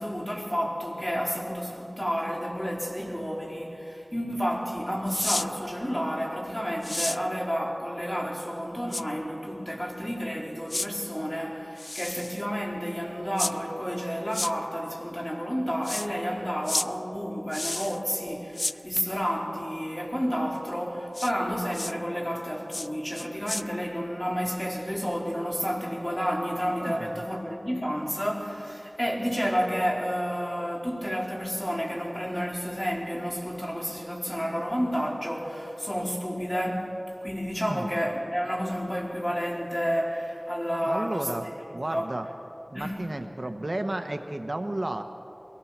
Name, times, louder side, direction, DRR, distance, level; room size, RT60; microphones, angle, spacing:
voice 1, 0.0-41.3 41.6-42.1 42.7-43.1 43.4-43.5, equal, 20° left, -2 dB, 4.2 m, -30 dB
sound 1, 5.1-5.5 6.8-7.2 8.9-9.0 10.7-10.9 11.8-12.4 13.4-13.5 14.3-14.5 15.8-16.1 16.7-16.9 17.5-18.0 18.6-18.8 21.1-21.3 21.7-21.9 22.7-22.9 23.2-23.6, left 1 dB, 55° left, 0.4 m, -31 dB
voice 2, 26.8-27.1 37.6-37.9 40.8-42.3 42.7-45.0, right 1 dB, 60° right, 6 dB, 1.1 m, -33 dB
22.5 x 17.5 x 7.4 m, 2.9 s
wide cardioid pair, 40°, 0 cm